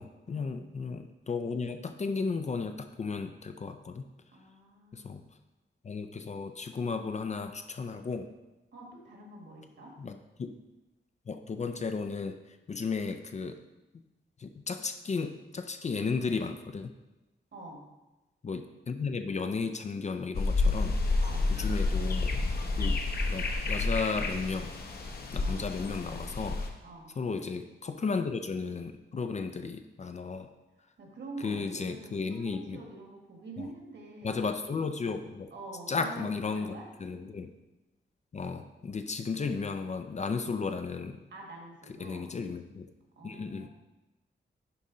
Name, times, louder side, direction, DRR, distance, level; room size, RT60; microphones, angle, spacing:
voice 1, 0.0-4.1 4.9-5.2 5.8-8.3 10.0-10.5 11.3-12.4 12.7-13.6 14.4-16.9 18.4-21.0 21.5-22.3 22.8-24.7 25.3-26.6 27.2-30.5 31.4-32.8 33.6-33.7 34.2-35.5 35.9-37.5 38.3-41.2 42.0-42.9 43.2-43.7, left 4 dB, 35° left, 7 dB, 0.4 m, -34 dB
voice 2, 4.3-5.1 8.7-9.9 17.5-17.8 21.2-21.5 25.4-25.6 26.8-27.1 31.0-34.4 35.5-36.8 41.3-42.3 43.1-43.7, right 2 dB, 65° right, 0 dB, 1.6 m, -46 dB
sound 1, 20.3-26.7, left 3 dB, 50° left, 0.9 m, -30 dB
11.0 x 4.2 x 3.8 m, 1.0 s
wide cardioid pair, 170°, 20 cm